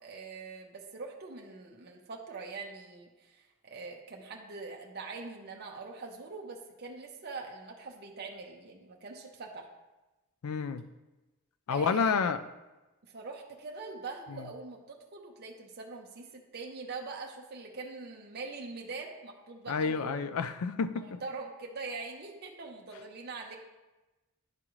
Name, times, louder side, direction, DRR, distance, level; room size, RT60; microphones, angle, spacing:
voice 1, 0.0-3.4 3.6-9.7 11.7-12.3 13.1-20.2 20.9-23.6, right 3 dB, 45° right, 0 dB, 0.7 m, -43 dB
voice 2, 10.4-10.8 11.7-12.4 14.3-14.5 19.7-21.0, left 5 dB, 75° left, 12 dB, 0.4 m, -29 dB
10.5 x 3.7 x 3.1 m, 1.1 s
head